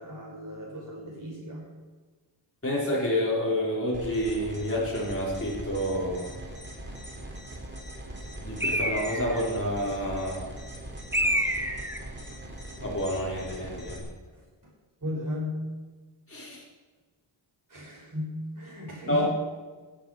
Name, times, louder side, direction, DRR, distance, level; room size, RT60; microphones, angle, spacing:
voice 1, 0.0-1.7 14.3-14.7 15.0-15.7 17.7-19.3, left 1 dB, 40° right, -4 dB, 5.3 m, -36 dB
voice 2, 2.6-6.3 8.4-10.5 12.8-14.1 16.3-16.6 19.1-19.3, equal, 25° left, -6 dB, 4.5 m, -29 dB
sound 1, 3.9-14.0, right 1 dB, 20° right, 3.4 m, -41 dB
Bird, 8.6-9.5 11.1-12.0, equal, 5° right, 1.5 m, -27 dB
16.0 x 8.9 x 5.8 m, 1.4 s
wide cardioid pair, 65°, 49 cm